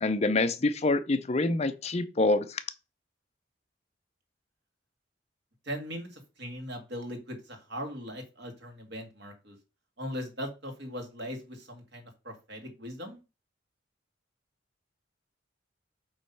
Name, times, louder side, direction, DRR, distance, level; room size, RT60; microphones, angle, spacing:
voice 1, 0.0-2.6, left 2 dB, 35° left, 0.6 m, -26 dB
voice 2, 5.7-9.6 10.0-13.2, equal, 60° right, 1.8 m, -39 dB
7.9 x 3.1 x 5.6 m
head